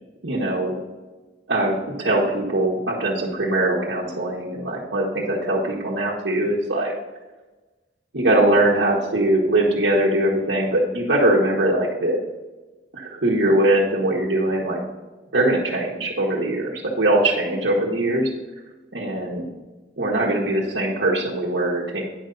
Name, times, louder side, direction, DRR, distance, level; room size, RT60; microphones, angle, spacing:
voice 1, 0.2-0.8 1.5-6.9 8.1-12.2 12.9-14.8 15.3-18.3 18.9-19.5 20.0-22.0, right 1 dB, 75° right, -5 dB, 1.3 m, -21 dB
9.3 x 5.6 x 3.9 m, 1.2 s
head